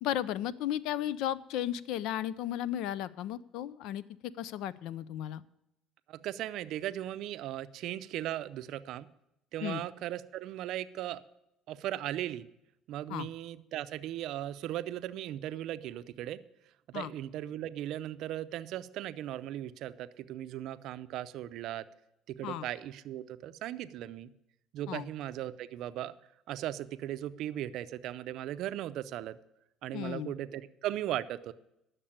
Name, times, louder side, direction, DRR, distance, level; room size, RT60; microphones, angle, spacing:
voice 1, 0.0-5.4 9.6-9.8 13.1-13.3 16.9-17.1 22.4-22.7 24.9-25.1 29.9-30.3, left 11 dB, 75° left, 19 dB, 0.4 m, -35 dB
voice 2, 6.1-9.1 9.5-11.2 11.7-12.5 12.9-16.4 16.9-21.9 22.3-24.3 24.7-26.1 26.5-29.4 29.8-31.5, right 13 dB, 65° right, 13 dB, 0.5 m, -37 dB
10.0 x 6.6 x 8.7 m, 0.85 s
cardioid pair, 130°, 0 cm